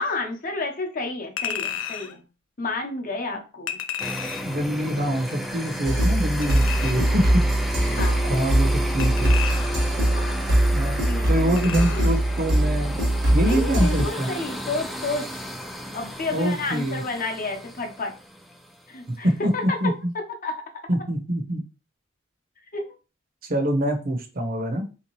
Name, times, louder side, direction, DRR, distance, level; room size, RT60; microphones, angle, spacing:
voice 1, 0.0-2.2 2.6-3.8 7.9-8.3 10.1-10.4 11.0-12.1 13.4-15.4 15.9-18.1 18.9-20.6 22.7-22.9, left 3 dB, 45° left, 4 dB, 0.8 m, -31 dB
Chink clink, 1.4-2.1 3.7-4.6 6.4-7.2 9.0-10.0 11.6-12.2 12.6-12.7, left 9 dB, 80° left, 0.5 m, -33 dB
sound 1, 4.0-18.7, equal, ahead, 0.3 m, -33 dB
voice 2, 4.4-7.5 8.3-9.3 10.7-11.0 11.3-13.0 13.3-14.3 16.3-17.0 19.2-19.5 19.8-20.1 20.9-21.6 23.5-24.9, right 1 dB, 45° right, 5 dB, 0.7 m, -25 dB
sound 2, 5.8-14.0, right 1 dB, 75° right, 1.1 m, -22 dB
3.5 x 2.9 x 3.0 m, 0.31 s
head